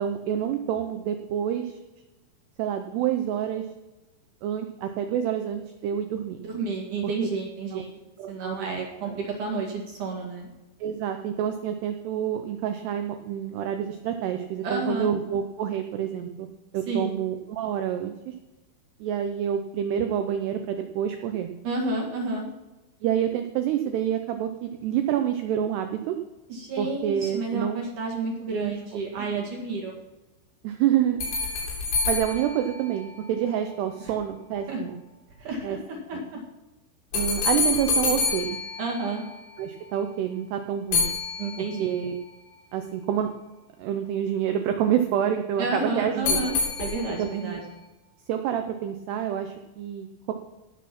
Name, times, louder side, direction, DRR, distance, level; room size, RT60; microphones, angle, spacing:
voice 1, 0.0-1.8 2.6-3.7 4.4-6.4 7.0-7.1 7.7-7.8 8.2-9.2 10.8-16.5 16.7-18.3 19.0-21.5 23.0-26.2 26.8-27.8 28.5-28.7 29.2-29.4 30.6-31.3 32.1-35.0 35.6-35.8 36.1-36.2 37.1-38.6 39.6-41.1 41.6-42.2 42.7-43.3 43.8-46.6 47.1-47.6 48.3-50.3, right 9 dB, 90° right, 6 dB, 2.3 m, -28 dB
voice 2, 6.4-8.0 8.3-9.1 9.4-10.5 14.6-15.1 16.9-17.1 21.6-22.5 26.5-29.9 34.7-34.8 35.4-36.4 38.8-39.2 41.4-42.0 45.6-47.6, right 3 dB, 60° right, -1 dB, 2.3 m, -30 dB
sound 1, 31.2-33.6 37.1-39.6 40.9-42.1 46.2-47.5, left 4 dB, 75° left, 6.1 m, -28 dB
17.5 x 6.3 x 5.9 m, 1.1 s
omnidirectional pair, 5.7 m